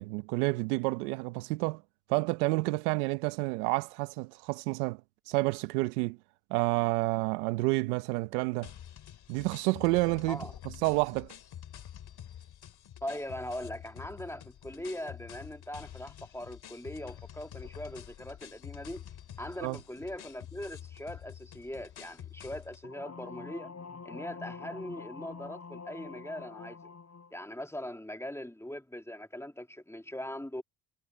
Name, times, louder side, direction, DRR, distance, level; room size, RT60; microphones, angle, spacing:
voice 1, 0.0-1.8 2.1-5.0 5.3-6.2 6.5-8.7 9.3-11.3 19.6-19.8, right 23 dB, 85° right, 1.1 m, -29 dB
sound 1, 8.6-22.9, left 10 dB, 60° left, 2.6 m, -48 dB
voice 2, 13.0-19.0 19.4-23.7 24.0-26.8 27.3-30.6, left 1 dB, 5° left, 2.9 m, -41 dB
sound 2, 22.8-27.3, left 5 dB, 35° left, 6.6 m, -45 dB
hypercardioid pair, 55°, 44 cm